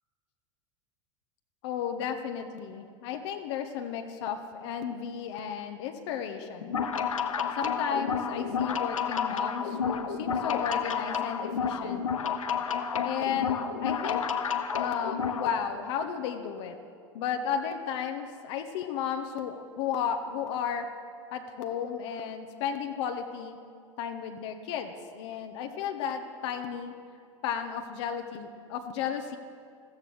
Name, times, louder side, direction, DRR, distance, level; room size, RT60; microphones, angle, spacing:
voice 1, 1.6-6.8 7.5-12.0 13.0-14.2 14.7-16.8 17.1-20.9 21.3-23.6 24.0-26.9 27.4-29.4, left 7 dB, 55° left, 5 dB, 1.2 m, -33 dB
sound 1, 6.6-15.5, left 6 dB, 80° left, 1.1 m, -30 dB
14.5 x 14.0 x 6.4 m, 2.3 s
figure-of-eight pair, 85°, 17 cm